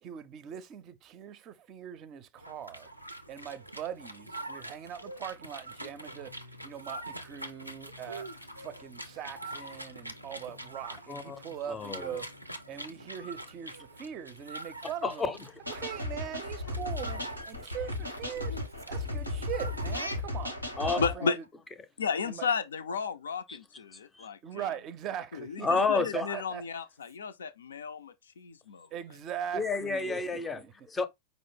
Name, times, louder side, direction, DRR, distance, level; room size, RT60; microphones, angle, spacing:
voice 1, 0.0-2.9 3.3-6.3 6.6-12.3 12.7-15.3 15.7-18.6 18.9-21.4 22.3-22.5 24.4-26.6 28.9-30.2 30.5-30.7, right 9 dB, 35° right, 0.5 m, -41 dB
sound 1, 2.4-20.5, right 1 dB, 90° right, 0.4 m, -44 dB
voice 2, 11.7-12.2 15.0-15.4 20.8-21.3 23.5-23.6 24.1-24.3 25.6-26.4 29.5-31.0, left 4 dB, 15° left, 0.6 m, -30 dB
sound 2, 15.7-21.1, left 2 dB, 90° left, 0.8 m, -35 dB
voice 3, 21.0-21.4 22.0-24.6 25.3-28.9, left 5 dB, 65° left, 0.4 m, -34 dB
4.9 x 2.0 x 3.5 m
figure-of-eight pair, 90°, 0 cm